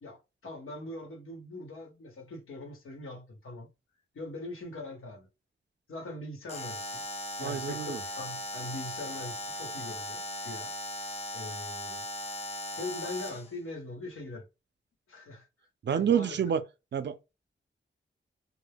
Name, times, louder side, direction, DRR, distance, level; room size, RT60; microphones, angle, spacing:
voice 1, 0.0-3.7 4.1-5.3 5.9-7.1 7.4-10.7 11.0-12.1 12.8-14.5 15.1-15.5 15.9-16.4, left 2 dB, 90° left, 0.9 m, -42 dB
Alarm, 6.5-13.5, left 1 dB, 30° left, 0.5 m, -38 dB
voice 2, 7.4-8.0 15.8-16.6 16.9-17.3, right 8 dB, 60° right, 0.4 m, -28 dB
2.2 x 2.0 x 3.3 m
wide cardioid pair, 75°, 21 cm